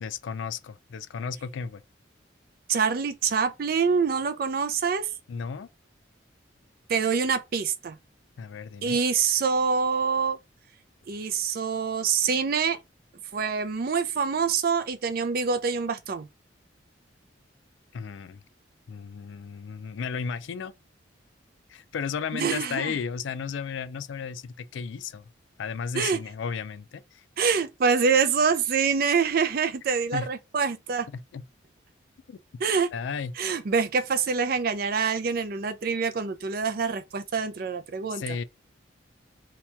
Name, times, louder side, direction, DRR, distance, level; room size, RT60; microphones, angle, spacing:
voice 1, 0.0-1.8 5.3-5.7 8.4-9.0 17.9-18.4 18.9-20.7 21.7-25.3 25.6-27.2 30.1-30.3 31.1-31.4 32.3-32.4 32.9-33.3 38.1-38.4, left 6 dB, 70° left, 0.3 m, -34 dB
voice 2, 2.7-5.1 6.9-8.0 8.8-10.4 11.1-12.8 13.3-16.3 22.3-22.9 25.9-26.2 27.4-31.1 32.6-32.9 33.4-38.2, right 5 dB, 50° right, 0.4 m, -25 dB
2.9 x 2.2 x 4.2 m
head